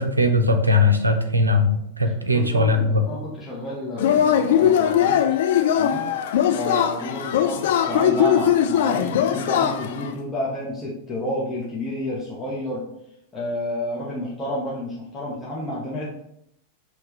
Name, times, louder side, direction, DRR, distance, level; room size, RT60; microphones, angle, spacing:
voice 1, 0.0-3.0, left 2 dB, 80° right, 6 dB, 0.5 m, -19 dB
voice 2, 2.0-5.2 5.8-6.0 6.5-12.8 13.3-16.1, left 1 dB, 15° left, -6 dB, 1.0 m, -30 dB
Yell / Cheering, 4.0-10.1, left 9 dB, 55° left, 0.3 m, -20 dB
5.6 x 3.1 x 3.0 m, 0.76 s
figure-of-eight pair, 90°, 0 cm